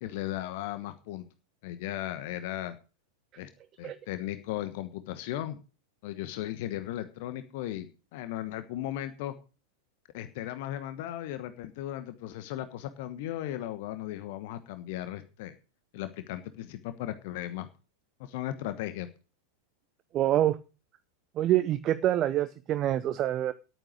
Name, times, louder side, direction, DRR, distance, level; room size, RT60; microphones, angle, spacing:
voice 1, 0.0-1.2 1.6-2.8 3.4-3.5 3.8-5.6 6.0-9.3 10.1-15.5 15.9-17.7 18.2-19.1, left 13 dB, 50° left, 11 dB, 1.2 m, -36 dB
voice 2, 20.1-20.6 21.4-23.5, right 12 dB, 30° right, 13 dB, 0.7 m, -26 dB
11.5 x 9.1 x 6.3 m, 0.34 s
figure-of-eight pair, 90°, 0 cm